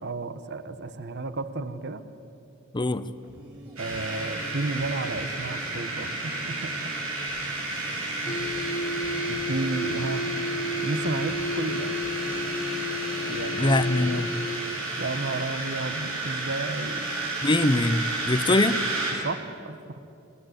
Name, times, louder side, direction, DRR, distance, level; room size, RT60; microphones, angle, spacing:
voice 1, 0.0-2.0 3.8-6.9 8.2-8.6 9.2-10.2 10.8-12.0 13.3-14.3 15.0-17.1 19.2-20.0, right 3 dB, 55° right, 11 dB, 1.2 m, -33 dB
voice 2, 2.7-3.1 13.6-14.3 17.4-18.8, left 2 dB, 20° left, 13 dB, 0.7 m, -23 dB
sound 1, 3.1-14.1, equal, 20° right, 4.3 m, -45 dB
sound 2, 3.8-19.1, right 2 dB, 80° right, 7.1 m, -32 dB
sound 3, 8.3-14.6, left 2 dB, 40° left, 1.7 m, -32 dB
30.0 x 19.0 x 8.2 m, 2.7 s
head